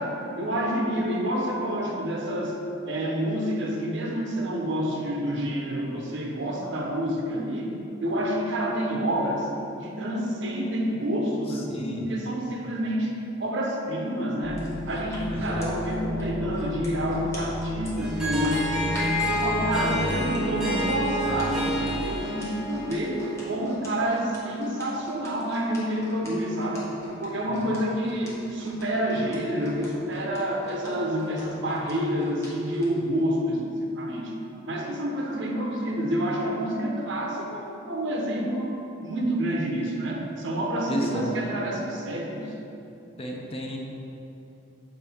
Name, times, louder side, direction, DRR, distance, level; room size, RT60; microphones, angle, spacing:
voice 1, 0.0-7.7 8.0-9.5 9.8-13.1 13.4-19.0 19.3-26.9 27.2-34.3 34.7-42.5, equal, 65° right, 0 dB, 0.8 m, -28 dB
voice 2, 11.7-12.0 15.3-15.7 27.5-27.7 40.9-41.3 43.2-43.8, equal, 30° left, 0 dB, 0.6 m, -32 dB
sound 1, 14.4-22.0, left 1 dB, 50° left, 1.2 m, -33 dB
sound 2, 14.5-19.3 20.1-32.9 33.3-33.5, left 1 dB, 15° left, 1.1 m, -45 dB
Harp, 18.0-23.7, equal, 5° right, 0.8 m, -29 dB
6.8 x 4.6 x 3.5 m, 2.8 s
head